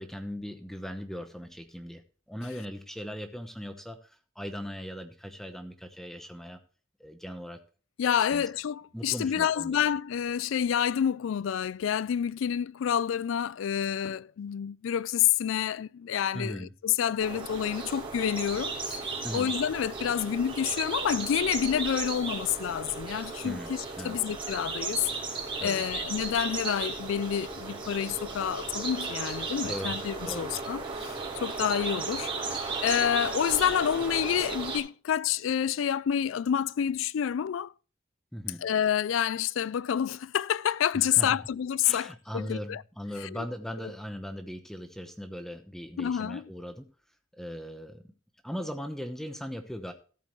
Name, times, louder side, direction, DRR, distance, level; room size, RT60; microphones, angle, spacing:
voice 1, 0.0-2.0 2.3-6.6 7.0-7.6 8.3-8.4 8.9-9.8 16.3-16.7 19.2-19.5 23.4-24.2 25.6-25.8 29.6-30.0 30.2-30.5 38.3-38.6 40.9-41.4 41.8-46.9 47.4-48.1 48.4-49.9, equal, ahead, 0.9 m, -39 dB
voice 2, 8.0-19.0 19.3-23.8 24.0-25.1 25.6-32.3 32.8-37.7 38.6-42.8 43.2-43.4 46.0-46.4, left 9 dB, 75° left, 0.3 m, -28 dB
sound 1, 17.2-34.8, right 4 dB, 25° right, 3.5 m, -35 dB
14.0 x 8.4 x 3.1 m
head